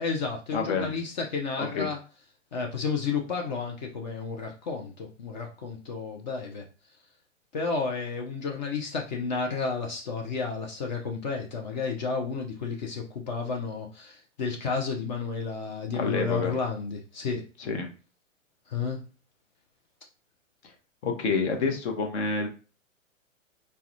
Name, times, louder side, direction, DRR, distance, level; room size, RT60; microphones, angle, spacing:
voice 1, 0.0-2.0 2.5-6.6 7.5-17.4 18.7-19.0, left 5 dB, 35° left, 1 dB, 0.4 m, -31 dB
voice 2, 0.5-0.9 1.6-1.9 15.9-16.5 17.6-17.9 21.0-22.5, left 4 dB, 55° left, 4 dB, 0.7 m, -28 dB
2.2 x 2.1 x 2.7 m, 0.35 s
figure-of-eight pair, 110°, 40 cm